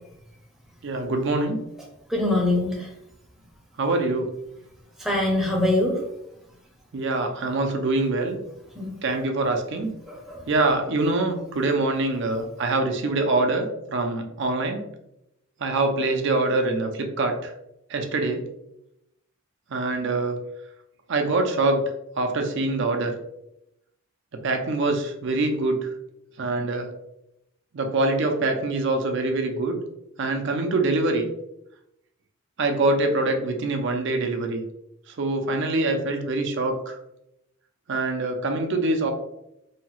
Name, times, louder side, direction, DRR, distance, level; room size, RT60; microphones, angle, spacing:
voice 1, 0.8-1.6 3.8-4.3 6.9-8.4 9.0-9.9 10.5-14.8 15.6-17.5 17.9-18.4 19.7-20.4 21.1-21.8 22.2-23.1 24.4-25.9 26.4-26.9 27.7-29.8 30.2-31.2 32.6-34.6 35.2-37.0 37.9-39.1, right 2 dB, 55° right, 4 dB, 0.4 m, -24 dB
voice 2, 2.1-2.9 5.0-5.9 8.8-8.9 10.1-10.4, left 2 dB, ahead, -2 dB, 0.6 m, -23 dB
2.7 x 2.2 x 3.0 m, 0.83 s
head